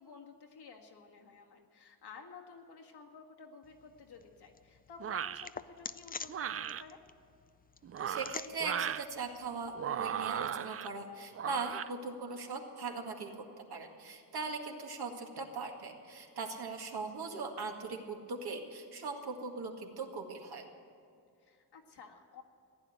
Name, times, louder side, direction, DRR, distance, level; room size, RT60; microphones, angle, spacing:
voice 1, 0.0-7.0 11.9-12.2 21.4-22.4, left 5 dB, 75° left, 2 dB, 1.8 m, -53 dB
sound 1, 3.6-10.4, left 5 dB, 25° left, 0.4 m, -49 dB
sound 2, 5.0-5.5 6.3-6.8 7.8-9.0 9.7-10.9 11.3-11.9, right 9 dB, 35° right, 0.4 m, -36 dB
voice 2, 8.1-20.7, right 4 dB, 70° right, 2 dB, 2.0 m, -40 dB
15.5 x 9.9 x 8.9 m, 2.5 s
cardioid pair, 90°, 40 cm